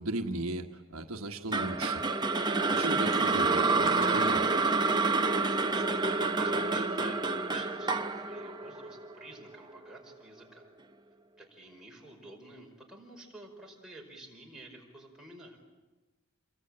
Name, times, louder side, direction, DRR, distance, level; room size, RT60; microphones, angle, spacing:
voice 1, 0.0-2.0 2.7-4.4, right 2 dB, 70° right, 4 dB, 1.4 m, -36 dB
sound 1, 1.5-9.7, right 3 dB, 20° right, 0.9 m, -28 dB
voice 2, 5.5-10.7 11.4-15.6, right 2 dB, 5° right, -2 dB, 5.2 m, -51 dB
27.5 x 23.0 x 8.8 m, 1.1 s
head